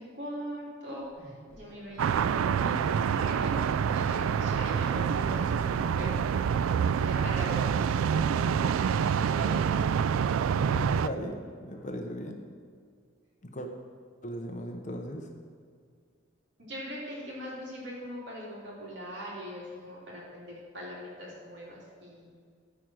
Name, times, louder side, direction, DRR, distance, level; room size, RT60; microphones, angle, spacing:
voice 1, 0.0-2.8 3.3-3.5 3.8-6.2 7.0-8.7 9.2-9.7 16.6-22.3, equal, 60° right, -5 dB, 3.1 m, -41 dB
sound 1, 0.9-6.6 6.9-8.8, equal, 20° right, 2.6 m, -49 dB
sound 2, 1.3-12.0, equal, 10° left, 1.3 m, -52 dB
sound 3, 2.0-11.1, right 7 dB, 90° right, 0.3 m, -27 dB
voice 2, 10.7-12.4 13.4-13.7 14.2-15.3, equal, 35° left, 3 dB, 0.8 m, -37 dB
13.5 x 4.8 x 6.3 m, 2.1 s
head